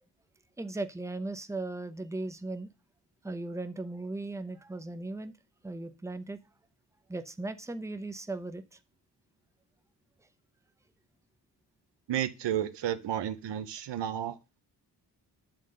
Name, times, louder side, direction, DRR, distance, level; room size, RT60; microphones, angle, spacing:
voice 1, 0.6-2.7 3.2-5.3 5.6-6.4 7.1-8.8, right 2 dB, 5° right, 0.8 m, -37 dB
voice 2, 12.1-14.4, right 10 dB, 80° right, 0.9 m, -32 dB
8.9 x 3.7 x 6.3 m
cardioid pair, 75°, 42 cm